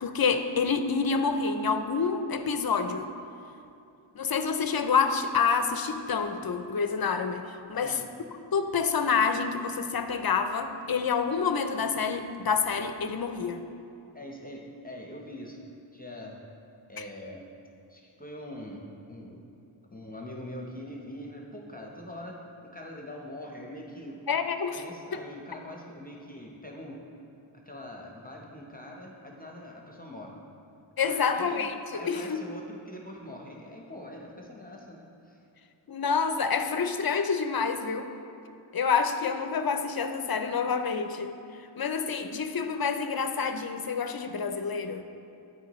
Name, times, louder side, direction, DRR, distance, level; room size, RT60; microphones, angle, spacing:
voice 1, 0.0-3.1 4.2-8.0 8.5-13.6 17.0-17.1 24.3-24.8 25.1-25.2 31.0-32.4 35.9-38.1 38.7-41.3 41.8-45.0, left 5 dB, 50° left, 8 dB, 0.5 m, -28 dB
voice 2, 7.7-8.1 14.1-15.6 15.9-16.4 16.9-17.5 17.9-19.4 19.9-24.3 24.7-27.0 27.5-30.4 31.0-31.6 31.9-35.4, left 1 dB, 20° left, -1 dB, 0.8 m, -43 dB
11.0 x 4.8 x 3.0 m, 2.7 s
wide cardioid pair, 55°, 48 cm